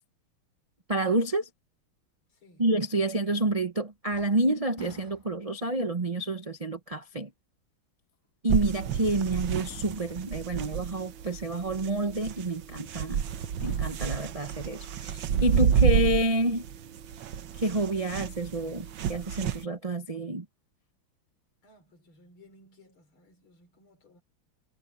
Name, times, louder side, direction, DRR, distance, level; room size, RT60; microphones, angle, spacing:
voice 1, 0.9-1.5 2.6-7.3 8.4-13.2 13.6-16.6 17.6-20.4, right 2 dB, 40° right, 0.5 m, -28 dB
voice 2, 2.3-2.7 21.6-24.2, left 1 dB, 80° left, 5.0 m, -58 dB
sound 1, 3.4-3.8 4.1-5.7 6.3-6.4 8.2-8.3 9.6-10.5 12.8-13.3 13.6-14.3 17.3-17.4 18.8-19.7 20.1-20.2, left 2 dB, 10° left, 1.1 m, -51 dB
sound 2, 8.5-19.6, right 8 dB, 70° right, 1.7 m, -30 dB
omnidirectional pair, 2.3 m